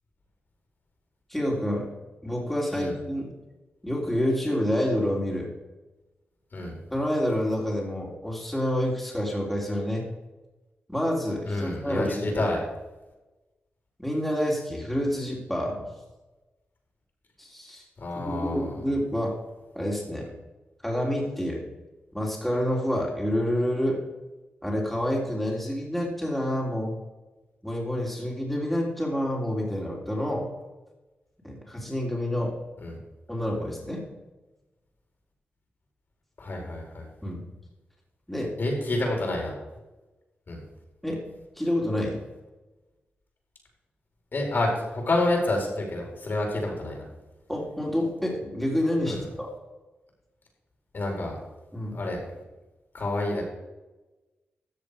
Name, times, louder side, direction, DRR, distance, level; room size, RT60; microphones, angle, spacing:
voice 1, 1.3-1.9 2.2-3.3 3.8-5.5 6.9-10.1 10.9-12.5 14.0-15.9 17.4-17.8 18.1-19.4 19.7-20.3 20.8-21.6 22.1-24.0 24.6-27.0 27.6-30.5 31.4-32.5 33.3-34.0 37.2-37.4 38.3-38.5 41.0-41.2 41.6-42.2 47.5-49.5 51.7-52.0, equal, 5° left, -3 dB, 3.3 m, -28 dB
voice 2, 11.5-12.6 18.0-18.7 32.8-33.0 36.4-37.0 38.6-39.5 40.5-40.6 44.3-47.1 49.1-49.2 50.9-51.4 51.9-52.2 52.9-53.4, left 2 dB, 55° left, 0 dB, 4.3 m, -28 dB
13.5 x 6.9 x 5.1 m, 1.1 s
cardioid pair, 90°, 4 cm